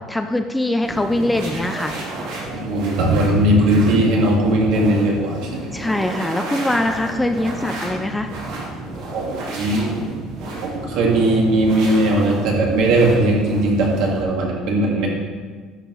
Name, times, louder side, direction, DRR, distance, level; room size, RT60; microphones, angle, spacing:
voice 1, 0.1-2.0 5.7-8.3, left 1 dB, 5° left, 7 dB, 0.3 m, -22 dB
sound 1, 0.8-14.2, right 2 dB, 90° right, 2.4 m, -32 dB
voice 2, 2.5-5.5 9.1-9.9 10.6-15.1, right 1 dB, 65° right, -1 dB, 1.9 m, -18 dB
11.5 x 4.7 x 3.9 m, 1.5 s
cardioid pair, 155°, 0 cm